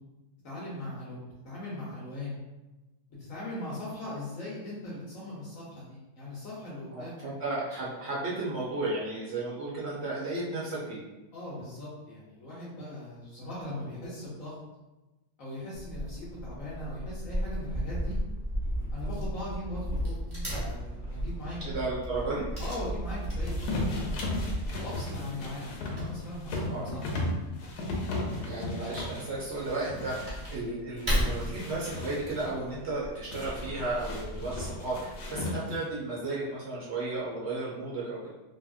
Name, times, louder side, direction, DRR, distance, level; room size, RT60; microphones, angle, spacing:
voice 1, 0.4-2.4 3.2-7.2 11.3-14.5 15.4-18.2 18.9-21.6 22.6-24.1 24.7-27.0, left 1 dB, 65° left, -7 dB, 1.0 m, -39 dB
voice 2, 6.9-11.0 21.6-22.4 26.7-27.0 28.4-38.3, right 2 dB, 60° right, -6 dB, 0.7 m, -34 dB
Wood / Tearing, 15.7-35.4, equal, 25° right, 1.1 m, -37 dB
sound 1, 18.5-24.7, right 1 dB, 45° left, 0.8 m, -36 dB
sound 2, 23.4-30.6 31.0-32.5 33.3-35.9, left 2 dB, 85° left, 1.2 m, -36 dB
2.8 x 2.6 x 2.4 m, 1.1 s
omnidirectional pair, 1.7 m